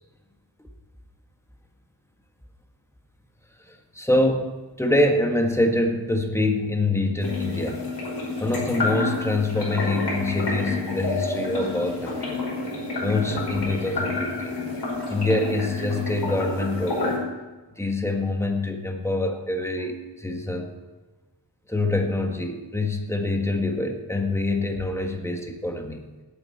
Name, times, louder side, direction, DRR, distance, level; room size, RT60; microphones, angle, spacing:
voice 1, 3.7-7.8 8.4-12.4 13.0-14.6 15.1-17.2 17.8-20.7 21.7-26.0, left 2 dB, 5° left, 3 dB, 1.8 m, -25 dB
sound 1, 7.2-17.2, left 3 dB, 65° left, 5.4 m, -29 dB
17.5 x 9.5 x 4.3 m, 1.2 s
wide cardioid pair, 90°, 42 cm